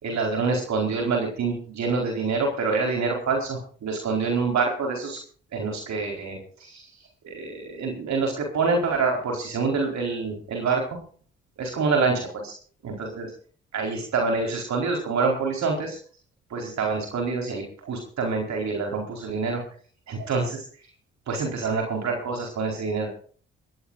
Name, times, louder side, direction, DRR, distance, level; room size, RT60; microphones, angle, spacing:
voice 1, 0.0-5.2 5.5-6.9 7.2-10.9 11.6-12.5 12.8-13.3 13.7-16.0 16.5-19.6 20.1-20.6 21.3-23.1, right 4 dB, 65° right, 1 dB, 4.5 m, -26 dB
23.0 x 15.5 x 2.6 m, 0.44 s
hypercardioid pair, 45°, 30 cm